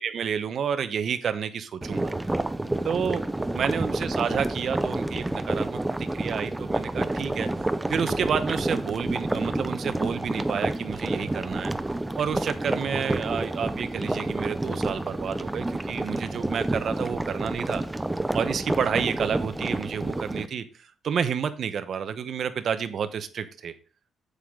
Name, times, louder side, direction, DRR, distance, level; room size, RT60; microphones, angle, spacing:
voice 1, 0.0-2.1 2.8-3.2 3.5-7.5 7.9-11.7 12.2-17.8 18.3-20.6 21.0-23.7, right 7 dB, 55° right, 10 dB, 0.9 m, -30 dB
sound 1, 1.8-20.5, right 2 dB, 10° right, 0.5 m, -29 dB
8.2 x 8.1 x 3.8 m, 0.36 s
cardioid pair, 140°, 0 cm